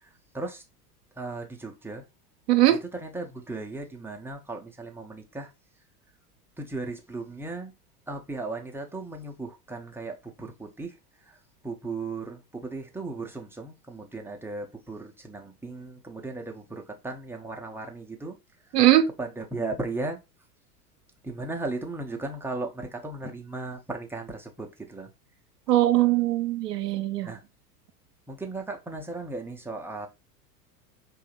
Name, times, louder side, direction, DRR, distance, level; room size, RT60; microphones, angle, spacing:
voice 1, 1.2-2.0 3.0-5.5 6.6-7.7 8.1-10.9 11.6-18.4 19.2-20.2 21.2-25.1 25.7-26.1 27.3-27.4 28.3-30.1, right 3 dB, 5° right, 0.6 m, -36 dB
voice 2, 2.5-2.8 18.7-19.1 25.7-27.3, right 14 dB, 80° right, 0.6 m, -21 dB
4.7 x 2.7 x 3.0 m
hypercardioid pair, 95°, 48 cm